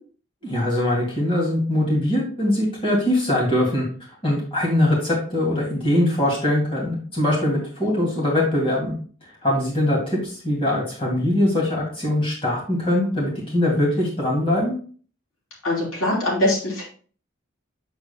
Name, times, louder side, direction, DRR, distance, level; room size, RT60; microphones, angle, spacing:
voice 1, 0.4-3.8 4.2-8.9 9.4-14.7, left 1 dB, 25° left, -4 dB, 2.4 m, -22 dB
voice 2, 15.6-16.8, left 1 dB, 85° left, -4 dB, 3.3 m, -22 dB
7.8 x 7.1 x 2.2 m, 0.42 s
head